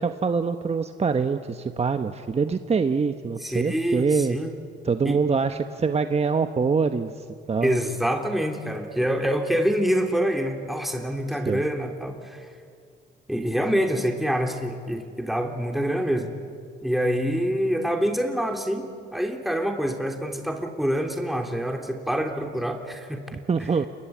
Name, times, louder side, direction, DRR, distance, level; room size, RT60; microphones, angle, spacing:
voice 1, 0.0-4.4 4.8-7.1 7.5-7.8 11.5-11.6 23.5-23.9, right 5 dB, 30° right, 8 dB, 1.1 m, -24 dB
voice 2, 3.4-4.5 5.0-5.2 7.6-12.5 13.3-16.3 16.8-23.2, equal, ahead, 3 dB, 3.1 m, -26 dB
28.0 x 23.5 x 8.6 m, 2.2 s
cardioid pair, 90°, 20 cm